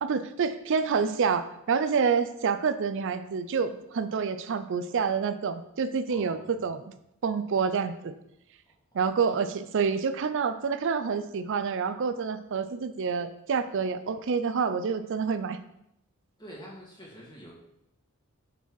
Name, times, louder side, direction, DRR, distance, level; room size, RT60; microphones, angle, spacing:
voice 1, 0.0-6.8 7.2-8.1 8.9-15.6, right 5 dB, 55° right, 11 dB, 0.4 m, -28 dB
voice 2, 6.1-6.7 16.4-17.5, equal, 20° left, -4 dB, 1.8 m, -46 dB
5.4 x 4.4 x 4.6 m, 0.80 s
head